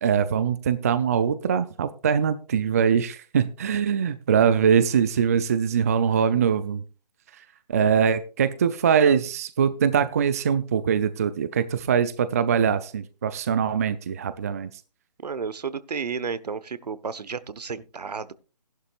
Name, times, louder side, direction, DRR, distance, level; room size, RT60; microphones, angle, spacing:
voice 1, 0.0-6.8 7.4-14.7, right 7 dB, 20° right, 14 dB, 0.4 m, -22 dB
voice 2, 15.2-18.3, right 5 dB, 70° right, 16 dB, 1.1 m, -32 dB
15.5 x 11.5 x 2.4 m, 0.34 s
figure-of-eight pair, 155°, 21 cm